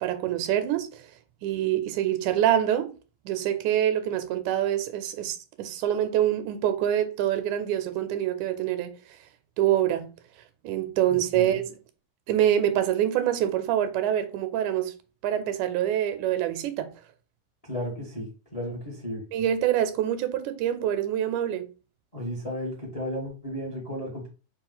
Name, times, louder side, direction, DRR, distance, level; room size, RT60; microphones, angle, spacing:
voice 1, 0.0-1.1 1.4-2.9 3.3-8.9 9.6-10.1 10.6-11.8 12.3-14.9 15.2-16.9 19.3-21.7, right 11 dB, 90° right, 2.1 m, -25 dB
voice 2, 17.6-19.2 22.1-24.3, equal, 50° left, 0.4 m, -34 dB
4.8 x 2.4 x 3.9 m
omnidirectional pair, 3.4 m